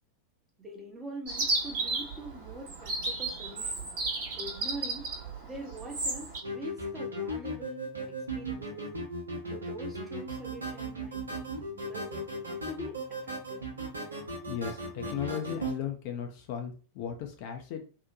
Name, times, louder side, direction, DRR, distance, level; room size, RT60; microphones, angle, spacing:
voice 1, 0.6-3.9 4.4-5.1 5.4-8.9 9.5-12.3 12.7-13.7, right 1 dB, 15° right, 1 dB, 0.8 m, -44 dB
Chirp tweet, 1.3-6.4, right 2 dB, 55° right, 0.9 m, -33 dB
sound 1, 6.4-15.8, right 1 dB, 75° right, 0.7 m, -37 dB
voice 2, 14.4-17.8, left 8 dB, 45° left, 4 dB, 0.4 m, -36 dB
2.8 x 2.1 x 2.6 m, 0.37 s
figure-of-eight pair, 90°, 0 cm